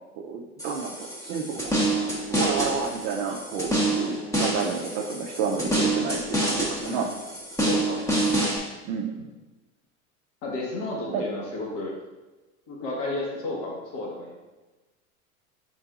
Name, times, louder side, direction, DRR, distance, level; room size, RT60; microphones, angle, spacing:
voice 1, 0.2-1.8 2.3-7.1 8.8-9.1 11.1-11.2, right 6 dB, 40° right, -1 dB, 0.5 m, -30 dB
sound 1, 0.6-8.6, right 1 dB, 5° left, 0.9 m, -27 dB
voice 2, 6.8-7.1 7.6-8.1 10.4-11.9 12.7-14.4, left 2 dB, 55° left, -3 dB, 1.4 m, -33 dB
4.4 x 3.9 x 2.4 m, 1.2 s
hypercardioid pair, 95°, 42 cm